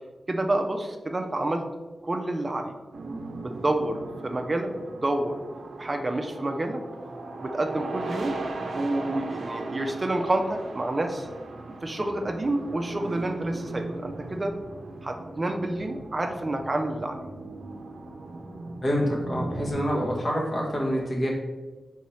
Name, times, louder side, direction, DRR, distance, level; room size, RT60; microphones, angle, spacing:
voice 1, 0.3-1.6 2.0-2.8 3.4-5.4 5.8-6.8 7.4-8.4 8.7-11.3 11.8-14.5 15.0-17.3, right 1 dB, 35° right, 4 dB, 0.4 m, -28 dB
sound 1, 2.9-19.7, right 2 dB, 85° right, 0.5 m, -38 dB
voice 2, 18.8-21.3, equal, 50° left, -2 dB, 1.2 m, -26 dB
4.3 x 3.8 x 3.1 m, 1.3 s
wide cardioid pair, 80°, 0 cm